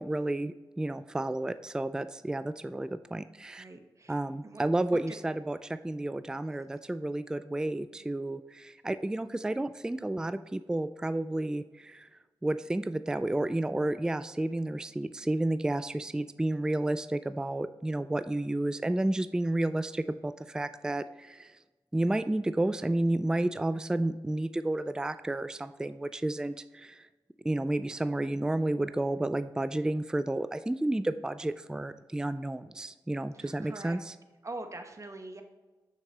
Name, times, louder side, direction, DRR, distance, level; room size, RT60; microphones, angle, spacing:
voice 1, 0.0-3.6 4.1-12.1 12.4-21.6 21.9-27.1 27.4-34.1, right 1 dB, 10° right, 12 dB, 0.3 m, -31 dB
voice 2, 3.6-4.6 5.1-5.2 33.3-34.0 34.4-35.4, right 2 dB, 35° right, 6 dB, 1.1 m, -43 dB
6.5 x 5.9 x 2.9 m, 1.2 s
cardioid pair, 45°, 9 cm